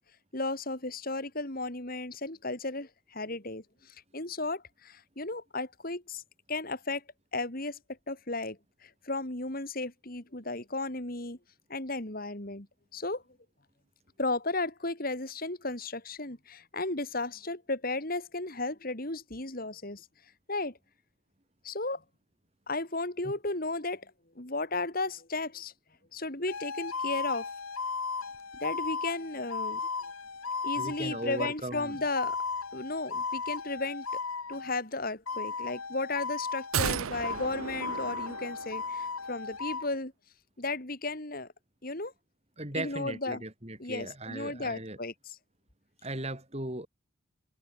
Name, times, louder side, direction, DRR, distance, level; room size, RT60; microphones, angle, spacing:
voice 1, 0.3-6.2 6.5-7.0 7.3-7.8 8.1-11.4 11.7-12.7 12.9-13.2 14.2-20.1 20.5-20.8 21.6-22.0 22.7-25.7 26.1-27.5 28.6-29.8 30.6-32.4 32.7-34.2 34.5-40.1 40.6-41.5 41.8-42.1 42.7-43.4 43.8-45.4, left 2 dB, 45° left, 2.8 m, -34 dB
sound 1, 26.5-34.8 35.3-37.0 37.2-39.9, left 4 dB, 90° left, 2.8 m, -36 dB
voice 2, 30.8-32.0 42.6-45.0 46.0-46.9, right 1 dB, 30° right, 4.2 m, -37 dB
sound 2, 36.7-39.1 39.4-39.5, right 7 dB, 85° right, 0.6 m, -34 dB
head